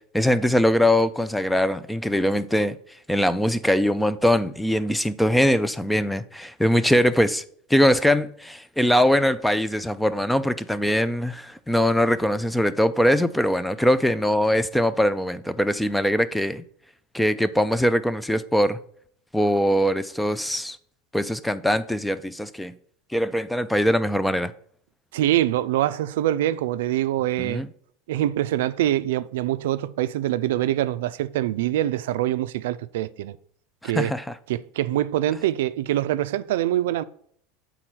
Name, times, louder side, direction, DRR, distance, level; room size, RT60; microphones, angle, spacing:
voice 1, 0.1-2.8 3.1-7.4 7.7-16.6 17.1-18.8 19.3-20.8 21.1-22.8 23.1-24.5 27.4-27.7 33.8-34.3, equal, 5° left, 0.3 m, -22 dB
voice 2, 25.1-27.6 28.1-33.4 33.8-34.1 34.5-37.0, right 13 dB, 85° right, 0.3 m, -24 dB
7.7 x 4.0 x 4.5 m
supercardioid pair, 135°, 0 cm